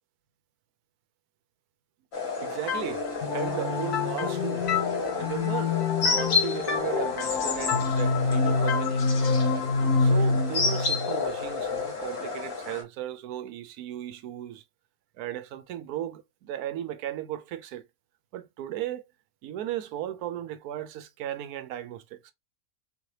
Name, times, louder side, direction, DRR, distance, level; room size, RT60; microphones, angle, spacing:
sound 1, 2.1-12.8, left 4 dB, 60° left, 1.6 m, -31 dB
voice 1, 2.4-3.0 3.3-4.7 5.1-5.8 6.0-9.0 10.0-14.6 15.2-17.9 18.3-19.0 19.4-22.3, right 12 dB, 80° right, 1.1 m, -36 dB
sound 2, 2.7-12.2, left 4 dB, 75° left, 1.5 m, -27 dB
3.7 x 3.2 x 2.8 m
omnidirectional pair, 1.6 m